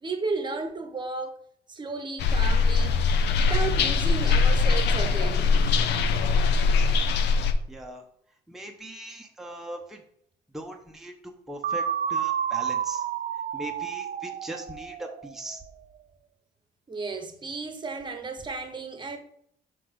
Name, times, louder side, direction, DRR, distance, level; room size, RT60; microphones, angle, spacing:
voice 1, 0.0-1.4 1.7-3.0 3.3-5.5 16.9-19.2, right 4 dB, 25° right, 1.0 m, -33 dB
sound 1, 2.2-7.5, left 4 dB, 85° left, 0.6 m, -22 dB
voice 2, 7.7-8.0 8.5-10.0 10.5-11.1 11.5-11.8 12.1-13.0 13.5-15.6, right 1 dB, ahead, 0.8 m, -39 dB
sound 2, 11.6-15.5, right 8 dB, 55° right, 0.4 m, -30 dB
5.8 x 3.4 x 5.2 m
cardioid pair, 105°, 17 cm